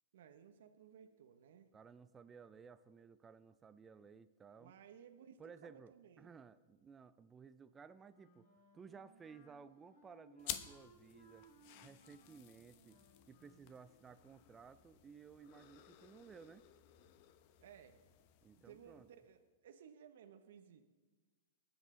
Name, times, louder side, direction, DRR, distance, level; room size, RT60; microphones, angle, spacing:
voice 1, 0.1-1.7 4.6-6.3 17.6-18.0 18.6-20.8, right 8 dB, 70° right, 7 dB, 0.9 m, -59 dB
voice 2, 1.7-4.7 5.4-8.5 8.7-11.5 11.8-13.0 13.3-16.6 18.4-19.1, right 6 dB, 20° right, 12 dB, 0.4 m, -57 dB
Wind instrument woodwind instrument, 8.1-13.7, right 2 dB, 70° left, 4.4 m, -66 dB
sound 1, 10.4-19.4, left 12 dB, 50° left, 0.9 m, -53 dB
20.0 x 8.1 x 3.8 m, 1.3 s
hypercardioid pair, 120°, 0 cm